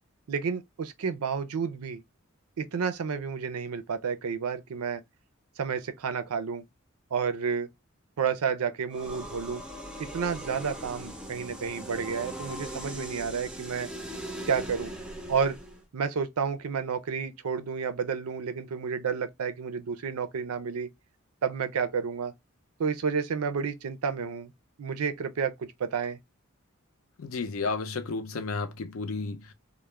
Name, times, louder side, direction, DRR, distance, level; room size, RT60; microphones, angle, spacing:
voice 1, 0.3-2.0 2.6-5.0 5.6-6.6 7.1-7.7 8.2-9.6 10.0-13.9 14.5-14.9 15.3-15.6 15.9-20.9 21.4-22.3 22.8-24.5 24.8-26.2, right 6 dB, 85° right, 0.5 m, -30 dB
sound 1, 8.9-15.8, right 1 dB, 5° right, 0.4 m, -40 dB
voice 2, 27.2-29.5, left 4 dB, 65° left, 0.5 m, -32 dB
2.3 x 2.1 x 3.0 m
head